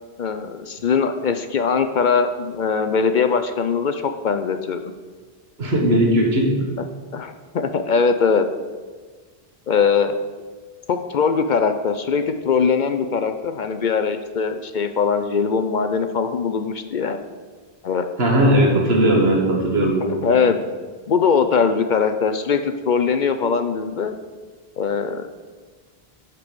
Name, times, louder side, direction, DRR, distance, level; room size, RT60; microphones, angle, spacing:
voice 1, 0.2-4.9 7.1-8.5 9.7-10.1 10.9-17.2 17.8-18.1 20.1-20.6 21.1-24.1 24.8-25.3, left 5 dB, 55° left, 8 dB, 0.6 m, -21 dB
voice 2, 5.6-6.7 18.2-20.3, right 1 dB, 75° right, 0 dB, 2.0 m, -18 dB
11.0 x 4.6 x 6.8 m, 1.4 s
omnidirectional pair, 1.0 m